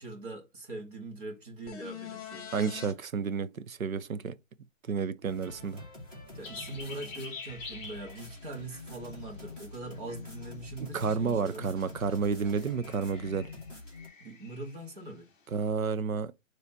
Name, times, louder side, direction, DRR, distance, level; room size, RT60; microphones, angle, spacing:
voice 1, 0.0-2.7 6.3-11.7 14.2-15.3, right 2 dB, 40° right, 2.0 m, -42 dB
sound 1, 1.7-2.9 6.8-6.9, left 9 dB, 30° left, 1.2 m, -42 dB
voice 2, 2.5-4.4 4.9-5.8 10.8-13.5 15.5-16.3, right 5 dB, 90° right, 0.8 m, -31 dB
sound 2, 5.2-14.1, left 2 dB, 10° right, 1.5 m, -46 dB
sound 3, 6.4-15.1, left 4 dB, 10° left, 0.9 m, -48 dB
6.9 x 3.3 x 4.3 m
hypercardioid pair, 160°, 40 cm